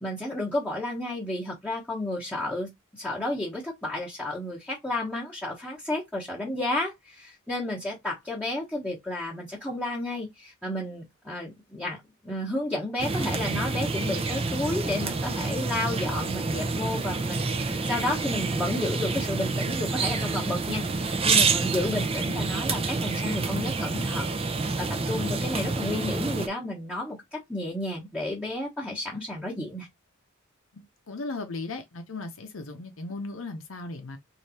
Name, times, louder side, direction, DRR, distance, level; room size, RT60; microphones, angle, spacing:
voice 1, 0.0-2.7 3.0-12.0 12.2-29.9, left 1 dB, 5° left, 1.0 m, -32 dB
sound 1, 13.0-26.5, right 4 dB, 25° right, 0.5 m, -28 dB
voice 2, 30.7-34.2, left 3 dB, 70° left, 0.7 m, -37 dB
3.3 x 2.7 x 4.2 m
head